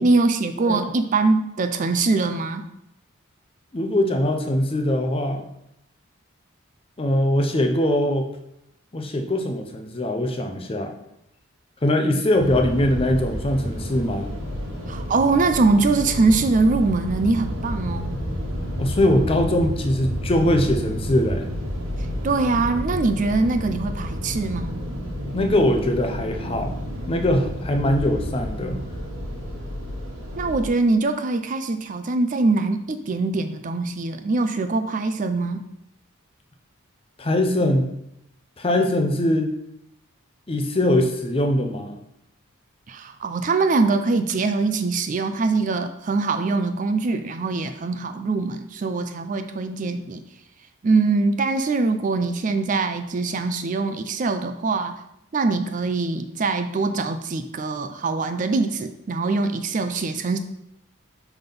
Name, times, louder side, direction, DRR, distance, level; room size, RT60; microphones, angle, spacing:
voice 1, 0.0-2.6 14.9-18.2 22.2-24.8 30.4-35.6 42.9-50.2 50.8-55.0 55.3-60.4, right 3 dB, 35° right, 8 dB, 0.4 m, -23 dB
voice 2, 3.7-5.4 7.0-8.3 8.9-10.9 11.8-14.3 18.8-21.5 25.3-26.8 27.1-28.8 37.2-37.9 38.6-39.5 40.5-42.0, left 1 dB, 25° left, 4 dB, 0.5 m, -22 dB
sound 1, 12.4-30.7, equal, 80° right, 1.4 m, -30 dB
5.9 x 3.5 x 5.3 m, 0.79 s
head